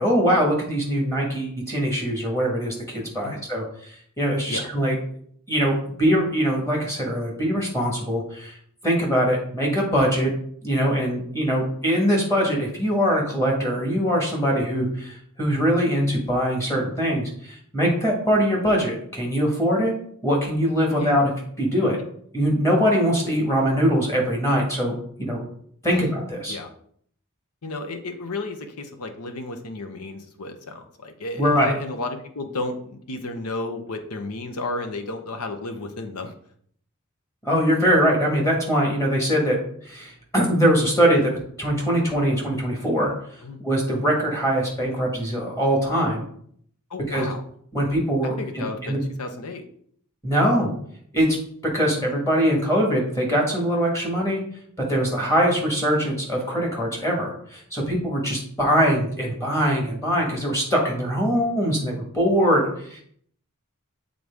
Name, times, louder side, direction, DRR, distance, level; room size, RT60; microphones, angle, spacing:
voice 1, 0.0-3.6 4.2-4.9 5.5-8.6 8.8-10.3 10.6-19.9 20.2-21.3 21.6-22.0 22.3-25.4 25.8-26.6 31.4-31.7 37.4-43.1 43.6-46.2 47.1-47.3 47.7-49.0 50.2-50.7 51.1-51.4 51.7-54.4 54.9-63.0, equal, 15° left, -2 dB, 1.5 m, -22 dB
voice 2, 27.6-36.3 43.4-43.6 46.9-47.4 48.2-49.6, left 2 dB, 90° left, 6 dB, 0.8 m, -33 dB
7.8 x 3.9 x 3.5 m, 0.63 s
head